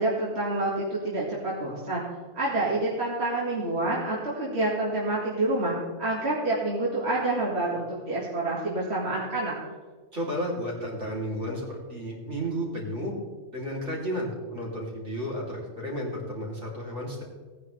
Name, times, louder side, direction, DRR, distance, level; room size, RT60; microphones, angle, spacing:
voice 1, 0.0-2.0 2.3-9.5, right 2 dB, 65° right, -5 dB, 2.3 m, -28 dB
voice 2, 10.1-13.1 13.5-17.2, equal, 85° right, -3 dB, 3.4 m, -32 dB
17.5 x 10.0 x 3.3 m, 1.4 s
omnidirectional pair, 1.2 m